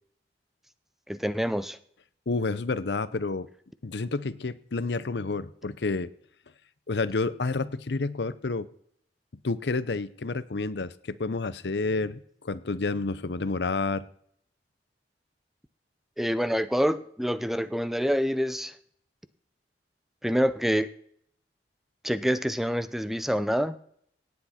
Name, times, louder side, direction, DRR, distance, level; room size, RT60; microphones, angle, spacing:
voice 1, 1.1-1.8 16.2-18.7 20.2-20.9 22.0-23.8, equal, ahead, 13 dB, 0.4 m, -26 dB
voice 2, 2.3-3.5 3.8-6.1 6.9-8.7 9.4-14.1, left 3 dB, 70° left, 16 dB, 0.7 m, -29 dB
18.0 x 8.5 x 4.3 m, 0.65 s
head